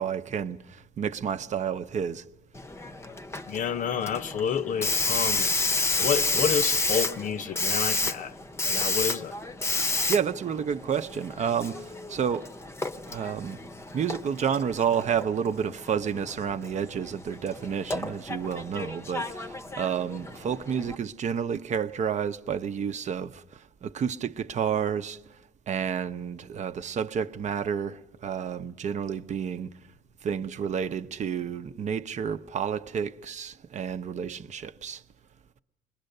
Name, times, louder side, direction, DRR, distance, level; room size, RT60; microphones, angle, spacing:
voice 1, 0.0-2.2 9.8-12.5 13.1-13.6 13.9-25.2 25.7-29.7 30.2-35.0, right 7 dB, 45° right, 0.8 m, -30 dB
Hiss, 2.6-21.0, left 2 dB, 15° left, 0.8 m, -31 dB
voice 2, 3.5-5.5 5.9-8.3 8.6-9.3, left 7 dB, 50° left, 0.8 m, -29 dB
27.5 x 22.0 x 6.6 m
cardioid pair, 110°, 17 cm